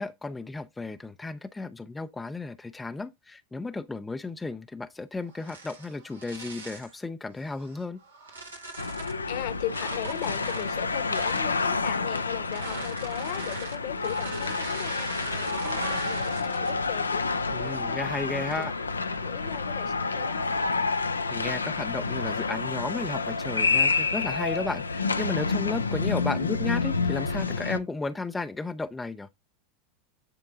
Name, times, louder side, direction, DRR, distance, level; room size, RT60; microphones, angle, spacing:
voice 1, 0.0-8.0 17.5-18.7 21.3-29.3, left 3 dB, 10° left, 0.5 m, -34 dB
sound 1, 5.3-7.0 7.6-9.2 9.6-11.5 12.4-16.9 17.3-17.6 18.3-18.8, right 3 dB, 80° right, 1.7 m, -40 dB
sound 2, 8.8-27.8, left 4 dB, 85° left, 0.5 m, -29 dB
voice 2, 9.0-18.7 19.0-20.7, left 12 dB, 55° left, 1.1 m, -38 dB
9.5 x 3.7 x 3.7 m
figure-of-eight pair, 85°, 0 cm